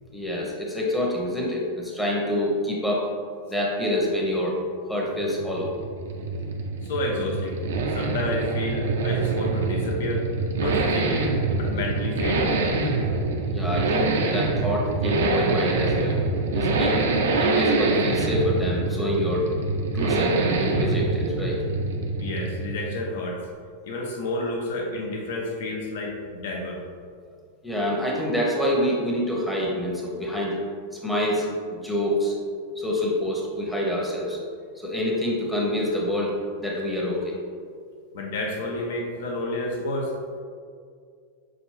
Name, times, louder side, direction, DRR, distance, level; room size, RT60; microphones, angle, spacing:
voice 1, 0.1-3.1 3.5-4.6 4.9-5.7 13.5-16.1 16.5-17.0 17.4-19.5 19.9-21.6 27.6-30.6 30.9-32.3 32.8-34.4 34.7-37.3, left 1 dB, 5° left, -3 dB, 0.9 m, -26 dB
sound 1, 5.1-23.1, right 3 dB, 60° right, 0.5 m, -25 dB
voice 2, 6.8-7.6 7.9-10.3 10.6-11.3 11.5-12.6 22.2-23.4 23.8-26.8 38.1-40.1, left 2 dB, 55° left, 0 dB, 0.7 m, -30 dB
6.0 x 2.5 x 3.2 m, 2.1 s
figure-of-eight pair, 90°, 0 cm